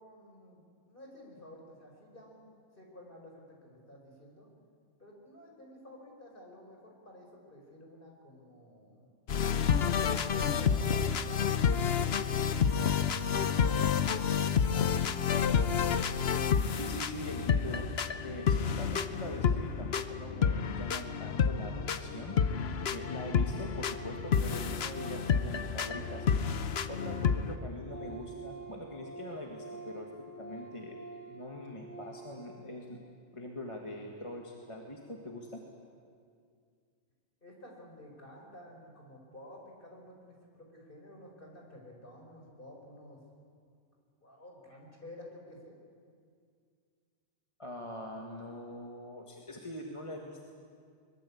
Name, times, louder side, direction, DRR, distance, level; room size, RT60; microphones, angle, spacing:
voice 1, 0.0-2.4 2.8-4.5 5.0-9.1 10.0-14.0 14.4-15.2 37.4-43.2 44.2-45.8, left 1 dB, 45° left, 0 dB, 5.2 m, -52 dB
sound 1, 9.3-27.6, left 7 dB, 60° left, 1.1 m, -29 dB
voice 2, 16.8-17.9 18.2-22.4 22.9-26.3 26.9-31.0 31.3-33.0 33.3-35.6 47.6-50.5, left 1 dB, 25° left, 0 dB, 1.9 m, -43 dB
Organ, 22.2-22.6 22.9-26.5 26.8-32.4, right 3 dB, 45° right, 4.9 m, -48 dB
23.0 x 21.5 x 8.6 m, 2.2 s
omnidirectional pair, 1.2 m